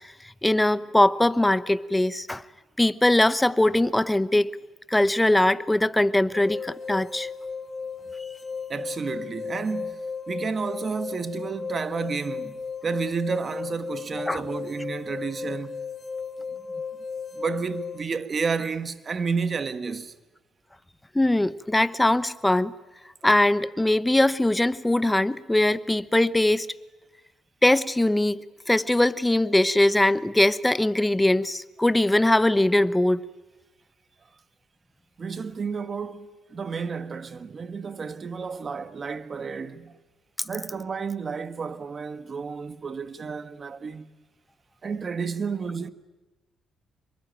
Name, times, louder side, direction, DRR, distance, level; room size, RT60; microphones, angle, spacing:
voice 1, 0.4-2.4 2.8-4.5 4.9-7.3 14.3-14.4 21.1-22.7 23.2-26.7 27.6-33.2, left 1 dB, 10° left, 0.9 m, -21 dB
sound 1, 6.3-18.0, left 5 dB, 40° left, 0.8 m, -35 dB
voice 2, 8.7-10.0 10.3-15.8 17.3-20.1 35.2-39.9 40.4-44.1 44.8-45.9, right 5 dB, 40° right, 1.5 m, -31 dB
25.5 x 23.0 x 9.2 m
cardioid pair, 90°, 0 cm